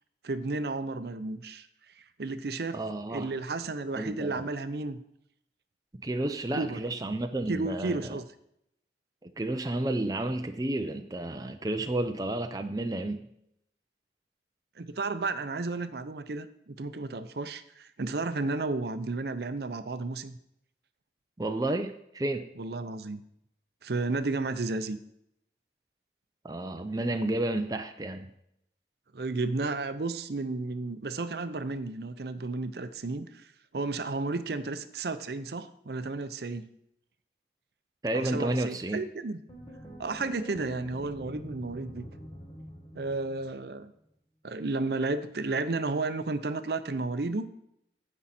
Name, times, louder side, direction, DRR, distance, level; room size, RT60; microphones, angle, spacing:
voice 1, 0.2-1.7 2.0-2.8 3.1-5.0 6.6-6.8 7.5-8.3 14.8-20.4 22.6-23.2 23.8-25.0 29.1-33.5 33.7-36.7 38.1-39.4 40.0-42.1 42.9-43.9 44.4-47.5, right 3 dB, 60° right, 11 dB, 0.6 m, -32 dB
voice 2, 2.7-3.3 3.9-4.5 5.9-8.2 9.2-13.3 21.4-22.4 26.4-28.3 38.0-39.1, right 1 dB, 20° right, 6 dB, 0.5 m, -31 dB
sound 1, 39.5-43.8, equal, 25° left, 1.5 m, -45 dB
14.5 x 5.4 x 4.3 m, 0.76 s
head